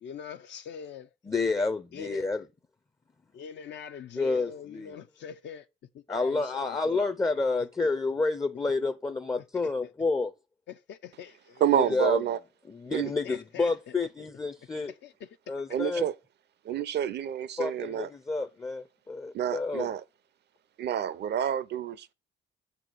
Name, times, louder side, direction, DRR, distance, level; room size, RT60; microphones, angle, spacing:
voice 1, 0.0-1.1 1.9-2.3 3.3-5.7 5.9-7.1 8.8-8.9 9.4-9.9 10.7-12.2 13.2-14.3 14.9-16.1, left 7 dB, 65° left, 0.5 m, -44 dB
voice 2, 1.3-2.4 4.2-4.9 6.1-10.3 11.7-12.2 12.7-14.9 15.5-16.0 17.6-19.9, left 3 dB, 15° left, 0.5 m, -29 dB
voice 3, 11.6-12.4 12.9-13.1 15.7-16.1 16.6-18.1 19.3-20.0 20.8-22.1, right 10 dB, 60° right, 0.5 m, -28 dB
6.1 x 4.1 x 4.5 m
cardioid pair, 90°, 20 cm